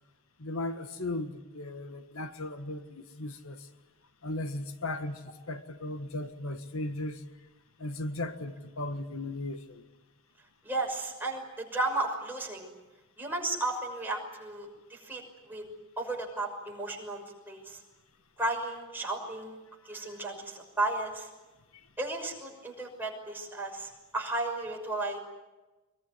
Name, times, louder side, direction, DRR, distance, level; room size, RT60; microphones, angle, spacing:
voice 1, 0.4-3.7 4.2-7.2 7.8-9.8 19.9-20.2 21.7-21.9, left 2 dB, 85° left, 1.6 m, -37 dB
voice 2, 10.6-12.7 13.2-15.6 16.0-17.8 18.4-19.6 19.8-21.3 22.0-25.2, right 2 dB, 10° right, 6.1 m, -34 dB
24.5 x 22.5 x 9.6 m
head